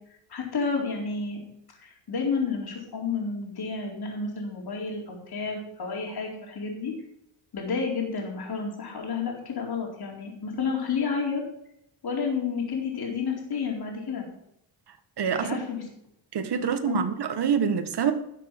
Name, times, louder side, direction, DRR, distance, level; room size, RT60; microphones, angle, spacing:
voice 1, 0.3-1.4 1.8-6.9 7.5-11.4 12.0-14.3 15.4-15.8 16.9-17.0, left 5 dB, 55° left, 4.2 m, -30 dB
voice 2, 15.2-15.6 16.3-18.1, right 7 dB, 55° right, 1.7 m, -26 dB
12.5 x 7.4 x 6.2 m
cardioid pair, 95°, 46 cm